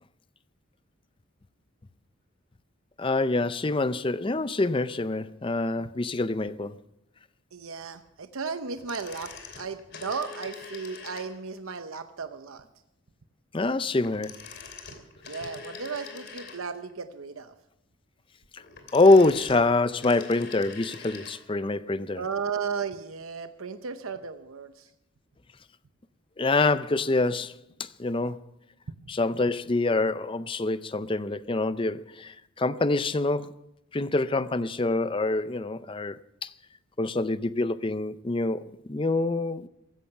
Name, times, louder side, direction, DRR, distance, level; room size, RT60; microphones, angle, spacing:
voice 1, 3.0-6.7 13.5-14.4 18.5-18.6 18.9-22.2 26.4-28.4 29.1-33.6 33.9-36.2 36.4-36.5 37.0-39.7, left 2 dB, 25° left, 0.5 m, -25 dB
voice 2, 7.5-12.6 15.2-17.5 22.2-24.9 29.0-29.1, right 5 dB, 90° right, 0.8 m, -35 dB
sound 1, 8.7-11.6 14.0-16.9 18.6-21.4 21.7-21.8, left 5 dB, 55° left, 2.9 m, -44 dB
15.5 x 14.0 x 5.8 m
head